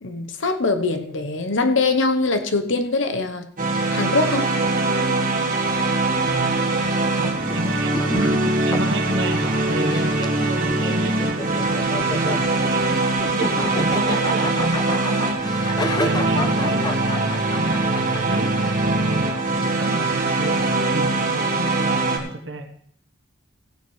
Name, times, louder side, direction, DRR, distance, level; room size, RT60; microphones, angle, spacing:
voice 1, 0.0-3.5 3.9-4.5 11.9-12.0, left 3 dB, 80° left, 7 dB, 1.0 m, -22 dB
sound 1, 3.6-22.2, right 2 dB, 40° right, 1.7 m, -22 dB
sound 2, 5.6-19.2, left 3 dB, 20° left, 0.4 m, -32 dB
voice 2, 6.3-6.7 7.2-15.4 16.0-22.7, right 1 dB, 70° right, 5 dB, 1.2 m, -30 dB
16.0 x 9.6 x 3.2 m, 0.64 s
head